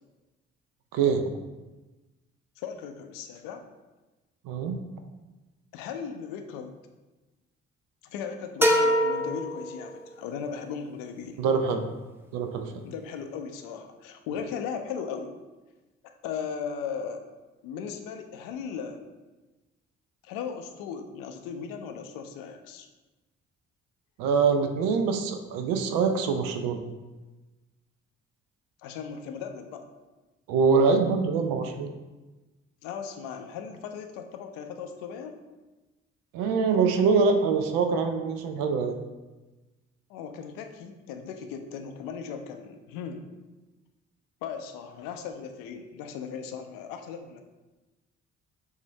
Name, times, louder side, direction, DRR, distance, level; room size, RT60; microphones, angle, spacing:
voice 1, 0.9-1.2 4.4-4.8 11.4-11.8 12.3-12.7 24.2-26.8 30.5-31.9 36.3-39.0, right 5 dB, 65° right, 6 dB, 0.6 m, -24 dB
voice 2, 2.6-3.6 5.7-6.7 8.0-11.4 12.8-15.4 16.2-17.2 17.6-19.0 20.2-22.9 28.8-29.9 32.8-35.3 40.1-43.3 44.4-47.4, left 6 dB, 65° left, 6 dB, 0.6 m, -37 dB
sound 1, 8.6-10.4, equal, 5° right, 0.6 m, -25 dB
6.3 x 2.6 x 3.2 m, 1.2 s
figure-of-eight pair, 40°, 36 cm